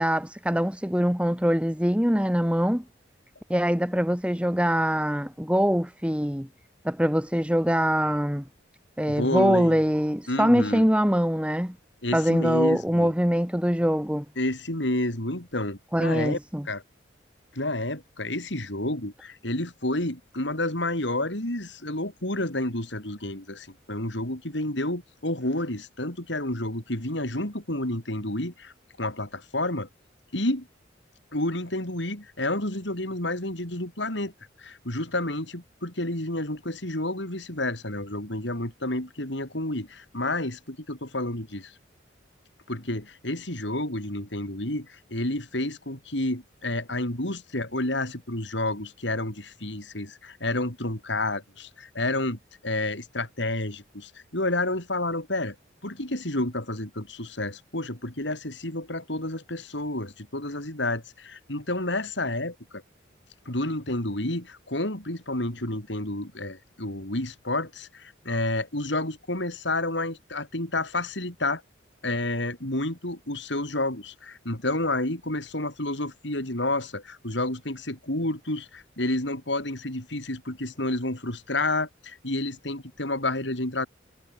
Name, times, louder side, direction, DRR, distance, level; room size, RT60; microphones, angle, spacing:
voice 1, 0.0-2.8 3.5-6.5 6.8-8.5 9.0-11.8 12.1-14.3 15.9-16.7, equal, 5° right, 1.8 m, -23 dB
voice 2, 9.1-9.8 10.3-10.9 12.0-13.1 14.4-16.4 16.7-16.8 17.5-29.9 30.3-30.7 31.3-34.3 34.6-41.7 42.7-55.6 55.8-62.8 63.5-71.6 72.0-83.9, left 1 dB, 70° left, 5.2 m, -30 dB
head